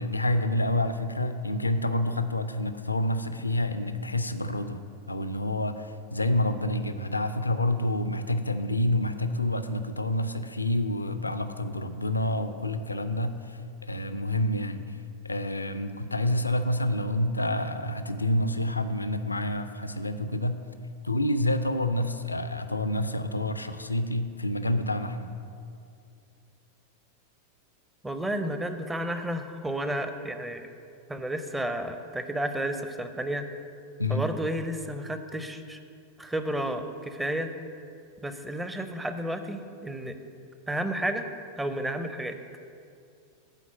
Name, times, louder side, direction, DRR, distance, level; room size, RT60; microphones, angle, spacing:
voice 1, 0.0-4.8 5.1-14.8 15.2-20.6 21.0-25.3 34.0-34.2, left 1 dB, 80° left, 10 dB, 0.4 m, -28 dB
voice 2, 28.0-30.6 31.1-33.5 34.1-35.8 36.2-37.5 38.2-40.2 40.7-41.3 41.6-42.4, right 1 dB, 5° right, 8 dB, 0.6 m, -31 dB
9.0 x 4.1 x 7.2 m, 2.4 s
figure-of-eight pair, 90°, 0 cm